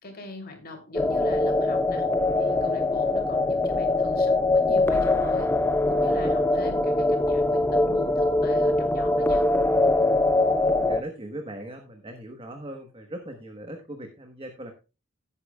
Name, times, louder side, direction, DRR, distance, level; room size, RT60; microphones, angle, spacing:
voice 1, 0.0-2.1 2.3-5.5 5.9-9.5, left 2 dB, 45° left, 4 dB, 3.1 m, -41 dB
sound 1, 0.9-11.0, left 2 dB, 10° left, 0.5 m, -22 dB
voice 2, 10.5-14.7, right 1 dB, 25° right, 4 dB, 1.2 m, -39 dB
16.5 x 8.5 x 2.3 m, 0.30 s
head